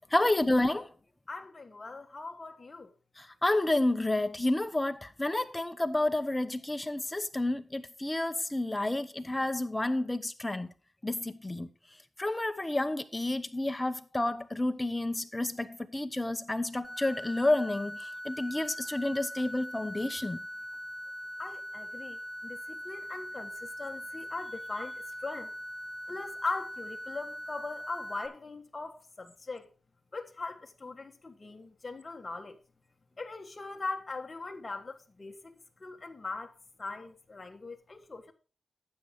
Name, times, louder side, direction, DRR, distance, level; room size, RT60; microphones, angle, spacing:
voice 1, 0.1-0.9 3.2-10.7 11.0-11.7 12.2-20.4, left 1 dB, 15° left, 1.0 m, -30 dB
voice 2, 1.3-2.9 21.4-25.5 26.1-29.7 30.1-32.6 33.2-35.5 35.8-38.3, left 3 dB, 30° left, 1.6 m, -40 dB
sound 1, 16.8-28.3, equal, 5° right, 1.6 m, -41 dB
12.0 x 8.4 x 3.7 m
cardioid pair, 85°, 0 cm